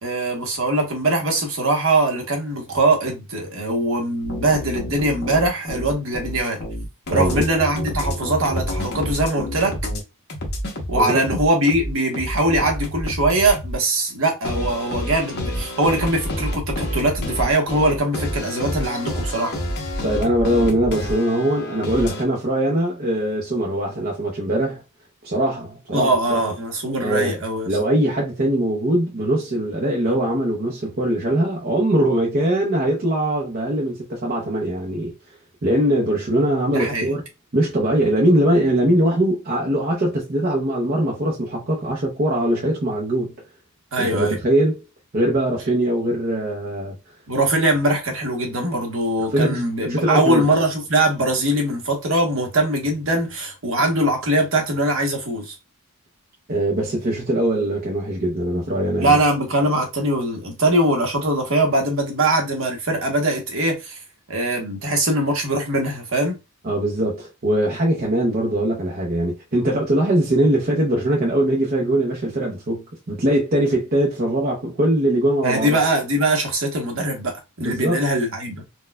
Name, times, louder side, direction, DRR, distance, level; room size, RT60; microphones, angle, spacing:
voice 1, 0.0-6.6 7.1-9.8 10.9-19.5 25.9-27.8 36.7-37.1 43.9-44.4 47.3-55.5 59.0-64.0 64.3-66.4 75.4-77.3 77.6-78.6, right 1 dB, 60° right, 1.0 m, -21 dB
sound 1, 4.2-10.0 10.3-13.7 14.4-22.2, left 1 dB, 50° left, 0.9 m, -28 dB
voice 2, 7.1-7.4 10.9-11.2 20.0-24.8 25.2-26.4 27.0-27.4 27.7-35.1 35.6-37.2 37.5-43.3 44.0-44.7 45.1-46.9 49.2-50.4 56.5-59.2 66.6-75.8 77.6-78.0, right 1 dB, 40° right, 0.7 m, -21 dB
4.2 x 2.3 x 2.2 m
head